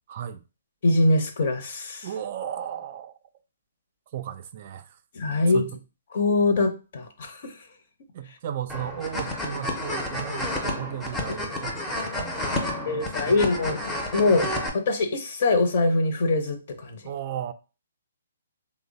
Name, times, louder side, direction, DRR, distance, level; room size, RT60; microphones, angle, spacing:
voice 1, 0.1-0.4 2.0-3.2 4.1-5.0 5.5-5.8 8.1-13.4 17.0-17.5, right 10 dB, 45° right, 0.3 m, -35 dB
voice 2, 0.8-2.1 5.1-5.7 6.1-7.5 12.9-17.0, left 2 dB, 50° left, 0.7 m, -23 dB
sound 1, 8.7-14.7, left 1 dB, 10° left, 0.6 m, -30 dB
3.0 x 2.0 x 3.9 m
hypercardioid pair, 150°, 0 cm